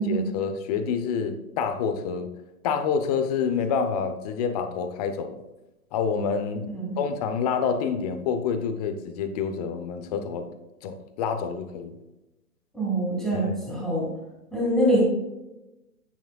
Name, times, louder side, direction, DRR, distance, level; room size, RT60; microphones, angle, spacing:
voice 1, 0.0-2.3 2.6-5.4 5.9-6.7 7.0-10.5 10.8-11.9 13.3-13.7, left 6 dB, 25° left, 8 dB, 0.7 m, -27 dB
voice 2, 6.7-7.0 12.7-14.1 14.5-15.0, right 1 dB, ahead, -5 dB, 2.9 m, -24 dB
9.5 x 8.3 x 2.3 m, 0.99 s
hypercardioid pair, 125°, 45 cm